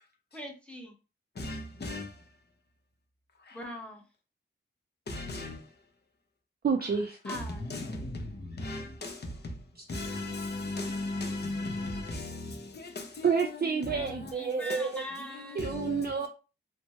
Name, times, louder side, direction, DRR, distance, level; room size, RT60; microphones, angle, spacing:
voice 1, 0.3-0.9 3.5-4.0 7.3-7.6 13.9-15.7, equal, 5° left, 0.9 m, -42 dB
voice 2, 1.4-2.0 5.1-5.6 7.2-8.1 8.6-9.1 9.9-12.5 13.4-13.5 13.9-14.3 15.3-16.1, left 2 dB, 55° left, 0.8 m, -36 dB
voice 3, 6.6-7.2 13.2-15.0 15.5-16.3, right 5 dB, 50° right, 0.4 m, -29 dB
3.4 x 2.1 x 3.0 m
wide cardioid pair, 90°, 21 cm